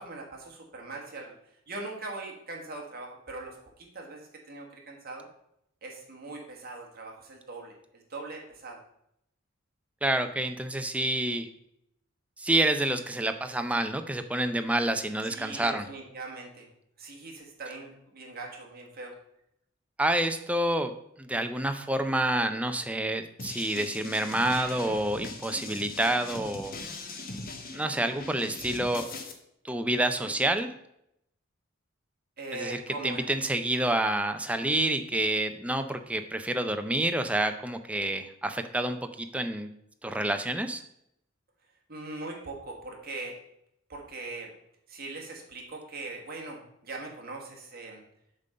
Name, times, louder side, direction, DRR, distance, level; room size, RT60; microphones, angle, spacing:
voice 1, 0.0-1.3 1.7-5.3 5.8-8.8 15.2-16.7 17.0-19.1 25.6-25.8 30.2-30.3 32.4-33.3 41.9-43.4 43.9-44.5 44.9-48.0, right 3 dB, 45° right, 0 dB, 1.7 m, -41 dB
voice 2, 10.0-11.5 12.4-15.9 20.0-20.9 21.2-26.7 27.7-29.1 29.6-30.7 32.5-39.7 40.0-40.8, right 1 dB, 5° right, 7 dB, 0.5 m, -28 dB
sound 1, 23.4-29.3, left 3 dB, 45° left, 1.0 m, -41 dB
7.5 x 3.8 x 6.6 m, 0.76 s
head